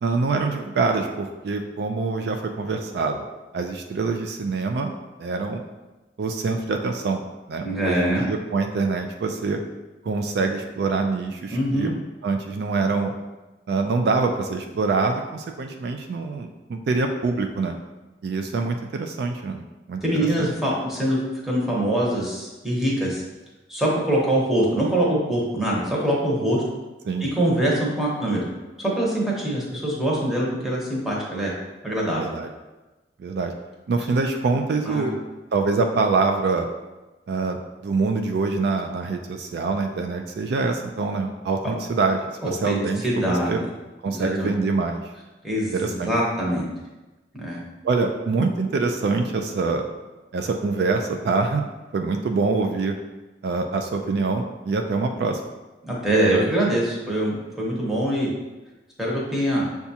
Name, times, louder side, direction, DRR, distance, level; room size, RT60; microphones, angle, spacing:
voice 1, 0.0-3.3 3.5-4.9 5.2-5.6 6.2-9.6 10.0-11.9 12.2-13.1 13.7-17.8 18.2-20.0 20.4-20.5 27.1-27.3 32.2-32.5 33.2-33.5 33.9-35.1 35.5-36.7 37.3-43.6 44.0-45.0 45.7-46.1 47.8-49.9 50.3-51.6 51.9-53.0 53.4-55.4, right 4 dB, 60° right, 4 dB, 0.3 m, -25 dB
voice 2, 7.6-8.2 11.5-11.9 20.0-21.2 21.4-23.2 23.7-26.6 27.2-28.5 28.8-31.5 31.8-32.2 34.9-35.1 41.6-41.7 42.4-42.8 43.0-43.6 44.1-44.5 45.4-46.7 47.3-47.6 55.8-58.3 59.0-59.7, right 1 dB, ahead, -5 dB, 0.9 m, -23 dB
7.0 x 2.3 x 2.7 m, 1.1 s
head